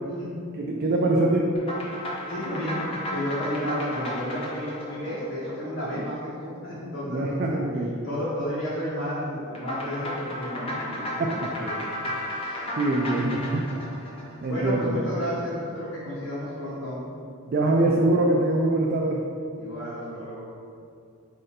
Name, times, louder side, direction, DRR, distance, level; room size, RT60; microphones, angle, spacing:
voice 1, 0.6-1.5 5.9-6.0 7.1-7.9 11.2-11.5 12.8-13.8 14.4-14.9 17.5-19.2, right 2 dB, 45° right, -1 dB, 0.3 m, -24 dB
sound 1, 1.6-6.2 9.6-15.0, left 1 dB, 25° left, 0.5 m, -34 dB
voice 2, 2.3-7.6 8.0-11.9 12.4-12.6 14.5-17.1 19.6-20.5, equal, 65° left, -10 dB, 0.9 m, -32 dB
4.1 x 2.6 x 4.1 m, 2.4 s
head